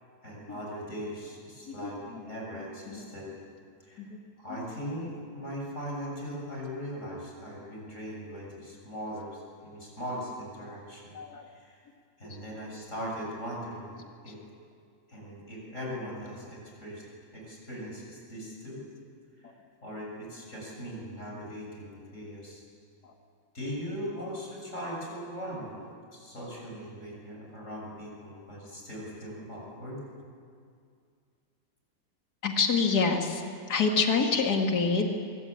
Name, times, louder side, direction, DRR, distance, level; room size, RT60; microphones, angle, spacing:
voice 1, 0.2-3.3 3.8-4.0 4.4-11.2 11.5-11.8 12.2-14.4 15.1-17.0 17.3-18.8 19.4-19.5 19.8-22.6 23.5-25.8 26.1-30.0, equal, 40° left, -2 dB, 7.5 m, -39 dB
voice 2, 1.7-2.5 2.9-3.0 4.0-4.2 11.1-11.4 19.4-19.5 23.0-23.1 32.4-33.4 33.7-35.1, left 4 dB, 60° left, 3 dB, 2.7 m, -27 dB
24.5 x 22.5 x 8.9 m, 2.3 s
omnidirectional pair, 1.9 m